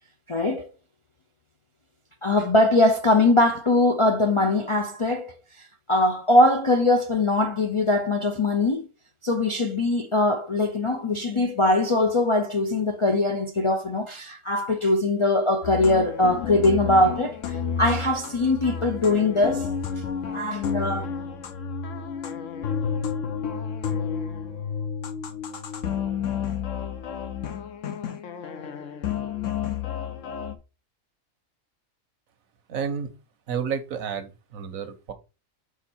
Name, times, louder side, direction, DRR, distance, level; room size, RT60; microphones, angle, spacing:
voice 1, 0.3-0.7 2.2-8.8 9.2-19.7 20.3-21.1, left 2 dB, 45° left, 0.4 m, -22 dB
sound 1, 15.6-30.6, left 7 dB, 70° left, 1.1 m, -31 dB
voice 2, 32.7-33.1 33.5-35.1, right 7 dB, 80° right, 1.4 m, -30 dB
5.3 x 4.6 x 4.3 m
omnidirectional pair, 1.4 m